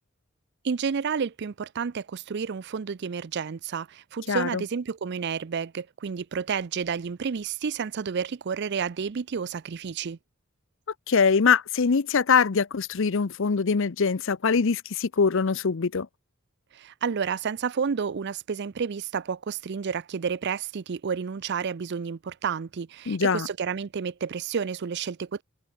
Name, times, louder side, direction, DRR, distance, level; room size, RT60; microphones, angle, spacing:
voice 1, 0.6-10.2 16.7-25.4, right 6 dB, 55° right, 0.5 m, -30 dB
voice 2, 4.3-4.6 11.1-16.1 23.1-23.5, left 5 dB, 65° left, 0.6 m, -23 dB
head